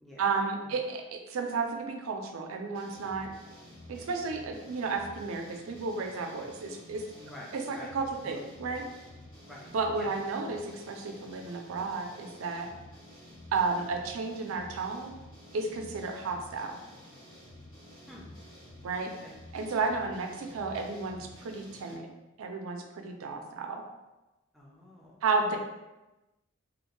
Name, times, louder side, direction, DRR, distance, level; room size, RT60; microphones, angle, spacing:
voice 1, 0.2-3.3 3.9-7.0 7.5-8.8 9.7-12.7 13.5-15.2 15.5-16.8 18.8-19.1 19.5-22.1 22.4-23.8 25.2-25.6, right 4 dB, 90° right, 4 dB, 0.4 m, -32 dB
sound 1, 2.7-21.9, left 1 dB, 70° left, 1.3 m, -51 dB
voice 2, 7.2-7.9 8.3-8.4 9.5-9.7 10.0-10.1 18.1-18.3 19.0-19.3 24.5-25.2 25.5-25.6, left 1 dB, ahead, -5 dB, 0.4 m, -48 dB
2.4 x 2.2 x 2.9 m, 1.0 s
head